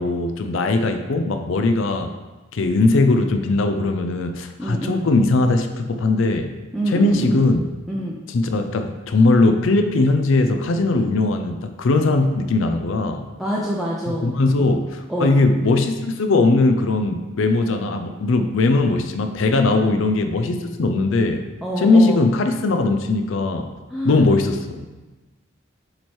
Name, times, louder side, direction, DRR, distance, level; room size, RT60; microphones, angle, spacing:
voice 1, 0.0-2.1 2.5-6.5 6.9-7.7 8.3-13.3 14.1-21.4 21.8-23.7 24.0-24.9, left 2 dB, 65° left, 6 dB, 0.4 m, -19 dB
voice 2, 4.6-5.0 6.7-7.4 7.9-8.2 13.4-14.3 14.6-14.7 15.1-15.4 21.6-22.2 23.9-24.3, right 1 dB, ahead, -5 dB, 0.6 m, -26 dB
7.4 x 3.1 x 4.4 m, 1.2 s
head